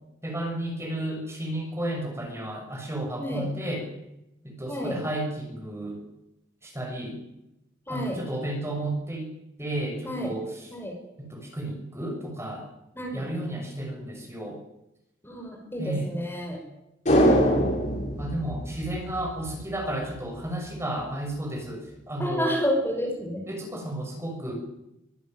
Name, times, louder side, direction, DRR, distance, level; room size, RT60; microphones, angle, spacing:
voice 1, 0.2-3.9 4.4-6.0 6.6-7.2 7.9-9.3 9.6-10.7 11.2-12.7 13.1-14.6 15.8-16.2 18.2-22.5 23.5-24.5, right 1 dB, 15° right, 1 dB, 6.5 m, -32 dB
voice 2, 7.9-8.2 10.0-10.3 10.7-10.9 13.0-13.2 15.2-16.6 17.1-17.9 22.2-23.4, equal, 10° left, 1 dB, 5.5 m, -30 dB
sound 1, 17.1-19.5 19.8-19.9, equal, 40° left, 7.4 m, -23 dB
24.5 x 14.5 x 9.3 m, 0.88 s
head